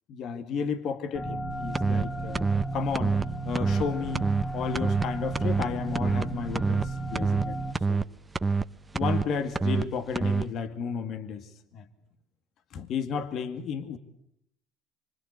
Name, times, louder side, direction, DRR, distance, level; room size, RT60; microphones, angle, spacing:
voice 1, 0.1-3.1 3.4-4.3 4.5-7.6 7.9-8.0 8.9-11.8 12.7-14.0, left 6 dB, 55° left, 10 dB, 2.2 m, -33 dB
sound 1, 1.1-7.7, right 2 dB, 20° left, 2.7 m, -34 dB
sound 2, 1.7-2.0 2.3-2.7 2.9-3.2 3.5-3.9 4.1-4.5 4.8-5.1 5.3-5.7 5.9-6.3 6.5-6.9 7.2-7.4 7.7-8.0 8.4-8.6 9.0-9.2 9.6-9.8 10.2-10.4, right 4 dB, 15° right, 1.0 m, -25 dB
25.5 x 25.5 x 8.4 m, 0.74 s
supercardioid pair, 90°, 0 cm